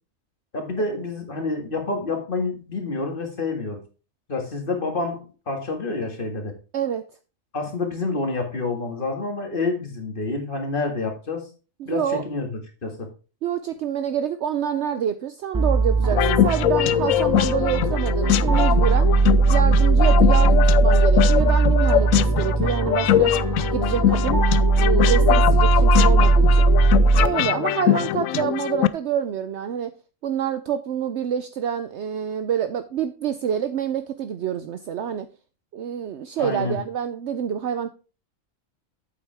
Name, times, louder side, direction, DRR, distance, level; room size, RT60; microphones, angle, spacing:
voice 1, 0.5-3.8 4.3-6.5 7.5-11.5 11.9-13.1 27.8-28.0 36.4-36.8, left 3 dB, 40° left, 3 dB, 2.1 m, -28 dB
voice 2, 6.7-7.0 11.8-12.2 13.4-19.1 19.5-23.3 23.7-24.4 24.7-26.7 27.2-29.9 30.2-35.3 35.7-37.9, right 9 dB, 65° right, 9 dB, 0.9 m, -27 dB
sound 1, 15.5-27.3, right 3 dB, 30° right, 0.4 m, -19 dB
sound 2, 16.1-28.9, left 11 dB, 80° left, 1.0 m, -22 dB
8.7 x 8.0 x 3.4 m, 0.34 s
omnidirectional pair, 1.4 m